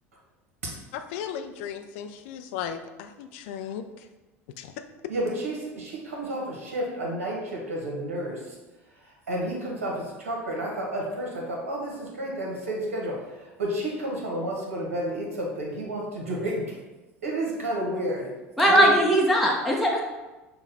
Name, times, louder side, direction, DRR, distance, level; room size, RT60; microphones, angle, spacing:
voice 1, 0.9-3.9 4.6-4.7, left 8 dB, 60° left, 7 dB, 0.4 m, -36 dB
voice 2, 5.1-8.4 9.3-13.1 13.6-16.6 17.2-18.2 18.7-19.0, right 1 dB, 75° right, -2 dB, 1.1 m, -30 dB
voice 3, 18.6-20.0, equal, ahead, -3 dB, 0.7 m, -19 dB
6.1 x 2.3 x 3.4 m, 1.1 s
figure-of-eight pair, 75°, 8 cm